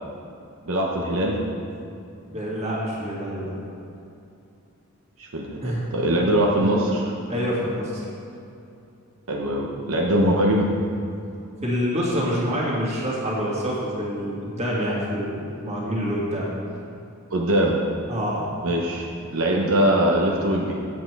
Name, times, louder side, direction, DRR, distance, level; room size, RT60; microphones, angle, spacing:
voice 1, 0.7-1.4 5.2-7.0 9.3-10.7 17.3-17.8 18.6-20.7, right 1 dB, 80° right, -2 dB, 0.9 m, -22 dB
voice 2, 2.3-3.6 5.6-5.8 6.6-6.7 7.3-8.1 11.6-16.5 18.1-18.5, equal, 30° right, -6 dB, 2.2 m, -26 dB
8.5 x 7.6 x 4.6 m, 2.6 s
head